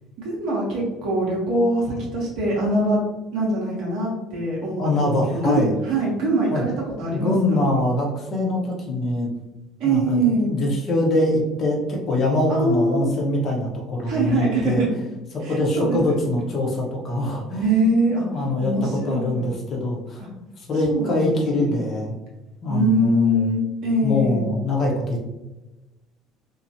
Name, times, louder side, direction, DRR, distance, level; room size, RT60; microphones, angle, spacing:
voice 1, 0.2-3.0 3.3-6.7 7.0-7.3 7.6-7.7 9.8-10.5 12.5-13.1 14.0-14.9 15.4-16.3 17.6-18.2 18.6-19.5 20.2-20.3 20.9-21.8 22.7-24.5, right 1 dB, 55° right, -4 dB, 0.8 m, -23 dB
voice 2, 4.8-5.7 6.5-6.6 7.1-9.3 9.8-14.8 15.3-17.9 18.2-20.2 20.6-22.2 22.6-23.5 24.0-25.2, left 1 dB, 40° left, -1 dB, 0.8 m, -23 dB
3.0 x 2.3 x 2.6 m, 1.1 s
figure-of-eight pair, 60°, 0 cm